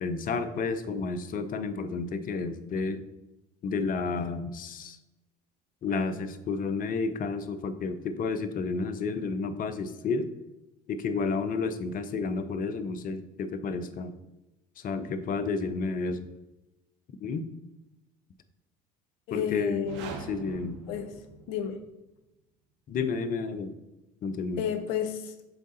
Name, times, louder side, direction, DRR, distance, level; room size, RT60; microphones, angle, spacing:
voice 1, 0.0-3.0 3.6-5.0 5.8-10.3 10.9-14.1 14.8-16.3 17.2-17.5 19.3-19.9 20.3-20.8 22.9-23.8 24.2-24.6, left 4 dB, 45° left, 12 dB, 0.8 m, -31 dB
voice 2, 19.3-20.1 20.9-21.1 21.5-21.8 24.6-25.3, left 8 dB, 70° left, 8 dB, 0.9 m, -31 dB
sound 1, 19.7-21.8, right 4 dB, 65° right, 1.1 m, -43 dB
7.9 x 3.7 x 4.1 m, 0.97 s
hypercardioid pair, 70°, 20 cm